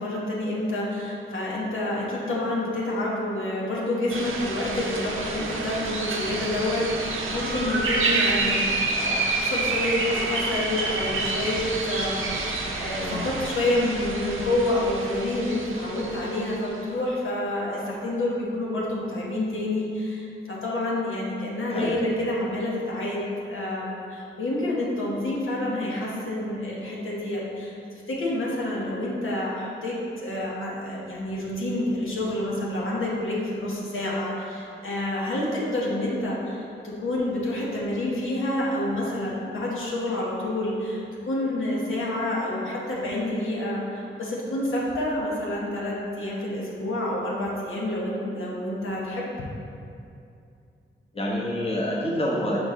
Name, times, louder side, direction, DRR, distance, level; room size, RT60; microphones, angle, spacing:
voice 1, 0.0-49.3, left 1 dB, 85° left, -5 dB, 1.2 m, -28 dB
sound 1, 4.1-16.7, right 3 dB, 90° right, 0.7 m, -28 dB
voice 2, 51.1-52.6, left 1 dB, 30° left, -4 dB, 1.1 m, -27 dB
6.3 x 4.6 x 3.7 m, 2.6 s
wide cardioid pair, 95°, 20 cm